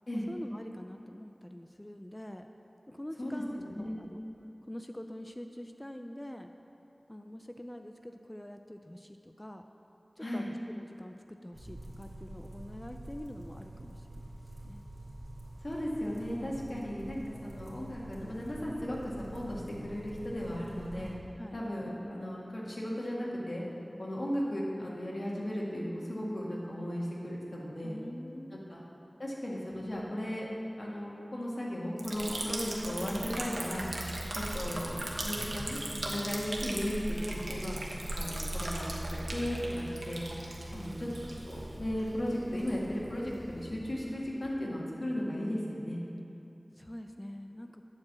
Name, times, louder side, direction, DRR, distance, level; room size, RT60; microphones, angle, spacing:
voice 1, 0.3-2.5 2.9-4.2 4.7-6.5 7.1-9.7 10.2-14.2 14.6-14.9 16.7-17.1 21.4-21.6 27.8-28.6 40.7-41.0 46.7-47.8, left 1 dB, 20° left, 6 dB, 0.4 m, -45 dB
voice 2, 3.2-4.0 10.2-10.5 15.6-21.2 21.5-23.6 24.0-28.0 28.5-28.8 29.2-30.5 30.8-33.9 34.4-34.9 35.2-35.8 36.0-37.8 38.1-39.0 39.3-40.2 40.7-41.1 41.4-46.0, equal, 60° left, -5 dB, 1.9 m, -36 dB
sound 1, 11.5-21.2, right 1 dB, 60° right, 2.4 m, -47 dB
Liquid, 32.0-44.4, right 1 dB, 90° right, 1.0 m, -38 dB
9.7 x 4.7 x 7.4 m, 2.9 s
wide cardioid pair, 45°, 0 cm